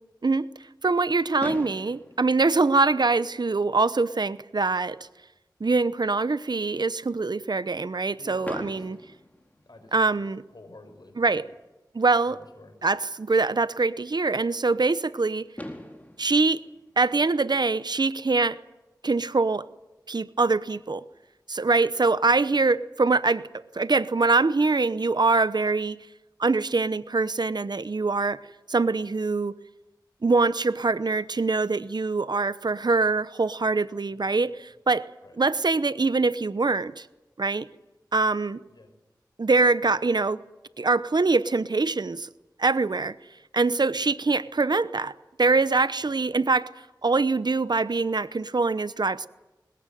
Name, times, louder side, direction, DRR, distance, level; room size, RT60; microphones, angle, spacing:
voice 1, 0.8-5.0 5.6-9.0 9.9-10.4 11.2-11.4 11.9-12.4 12.8-15.5 16.2-16.6 17.0-18.6 19.0-19.7 20.1-21.0 21.5-23.5 23.7-26.0 26.4-28.4 28.7-29.5 30.2-35.1 35.4-37.1 37.4-37.7 38.1-38.6 39.4-40.4 40.8-42.3 42.6-43.2 43.5-45.1 45.4-46.7 47.0-49.3, right 3 dB, 65° right, 15 dB, 0.8 m, -24 dB
Fireworks, 1.4-3.4 4.2-4.3 4.5-4.7 5.0-5.1 8.4-10.3 12.0-12.1 15.1-15.2 15.6-17.9, left 1 dB, 20° left, 4.2 m, -42 dB
voice 2, 8.1-8.9 9.5-11.5 12.2-12.7 22.2-22.4 34.1-34.3 35.2-35.4 38.7-38.9 39.8-40.0 43.9-44.2 46.0-46.2, left 2 dB, 65° left, 6 dB, 5.8 m, -51 dB
21.5 x 21.0 x 9.2 m, 1.0 s
wide cardioid pair, 45°, 8 cm